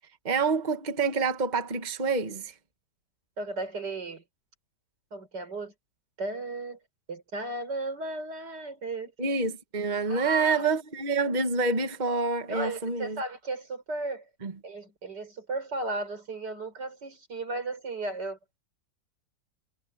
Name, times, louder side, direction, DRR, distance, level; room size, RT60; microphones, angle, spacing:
voice 1, 0.2-2.5 9.2-13.2 14.4-14.5, right 4 dB, 25° right, 1.5 m, -27 dB
voice 2, 3.4-4.2 5.1-5.7 6.2-6.8 7.1-9.1 10.1-10.7 12.5-14.2 14.6-18.6, right 2 dB, 85° right, 5.2 m, -35 dB
omnidirectional pair, 1.8 m